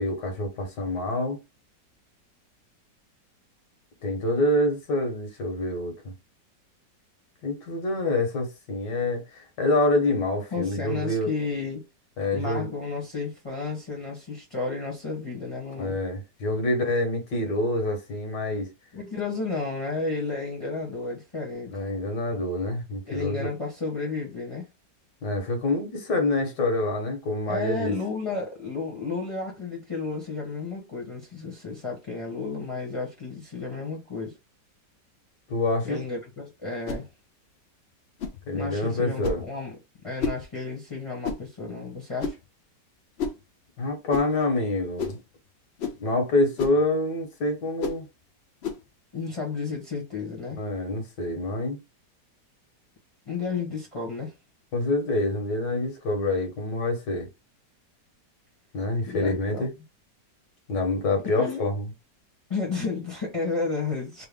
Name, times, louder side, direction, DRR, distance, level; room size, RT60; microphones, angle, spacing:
voice 1, 0.0-1.4 4.0-6.1 7.4-11.3 12.2-12.7 15.8-18.7 21.7-23.5 25.2-27.9 35.5-36.0 38.5-39.4 43.8-45.2 46.0-48.1 50.6-51.8 54.7-57.3 58.7-59.7 60.7-61.9, left 2 dB, 70° left, 1.7 m, -26 dB
voice 2, 10.5-11.8 12.3-16.0 18.9-21.8 23.1-24.7 27.5-34.4 35.8-37.1 38.5-39.8 40.0-42.4 49.1-50.6 53.3-54.3 59.1-59.7 61.4-61.7 62.5-64.2, left 4 dB, 20° left, 1.0 m, -32 dB
sound 1, 36.8-37.1 38.2-38.4 39.2-39.5 40.2-40.4 41.2-41.5 42.2-42.5 43.2-43.4 44.1-44.3 45.0-45.2 45.8-46.0 46.6-46.8 47.8-48.0 48.6-48.8, left 4 dB, 90° left, 0.5 m, -31 dB
3.6 x 2.2 x 3.5 m
omnidirectional pair, 1.9 m